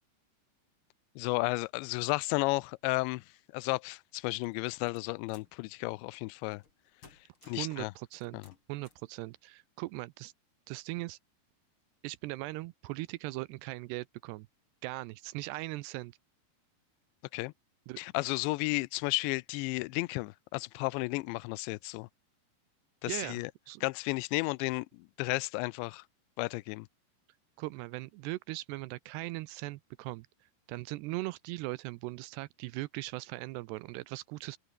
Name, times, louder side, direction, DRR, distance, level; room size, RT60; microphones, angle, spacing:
voice 1, 1.2-3.2 3.5-6.6 7.5-7.9 8.3-8.4 17.3-17.5 18.0-22.1 23.0-23.5 23.8-26.0 26.4-26.9, left 24 dB, 85° left, 2.8 m, -33 dB
sound 1, 4.4-5.6 6.5-6.8 7.0-7.7 8.1-9.1, left 4 dB, 30° left, 4.1 m, -60 dB
voice 2, 7.4-8.4 8.7-10.3 10.7-11.2 12.0-14.5 14.8-16.2 17.9-18.0 23.1-23.4 23.7-23.8 27.6-30.3 30.7-34.6, right 20 dB, 80° right, 2.5 m, -39 dB
open air
omnidirectional pair, 5.2 m